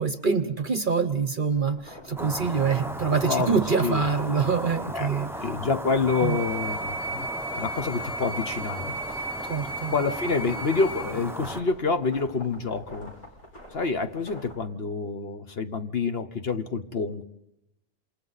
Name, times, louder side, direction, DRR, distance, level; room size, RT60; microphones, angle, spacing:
voice 1, 0.0-5.3 6.2-6.4 9.4-9.9, right 5 dB, 40° right, 11 dB, 0.9 m, -25 dB
sound 1, 1.5-14.6, left 1 dB, 85° left, 6.3 m, -48 dB
sound 2, 2.2-11.6, right 1 dB, 5° right, 0.4 m, -36 dB
voice 2, 3.3-4.0 4.9-5.1 5.4-9.0 9.9-13.1 13.7-17.2, left 4 dB, 45° left, 8 dB, 1.2 m, -28 dB
sound 3, 6.1-11.1, right 2 dB, 65° left, 6.4 m, -35 dB
28.0 x 27.0 x 4.1 m, 0.87 s
omnidirectional pair, 1.5 m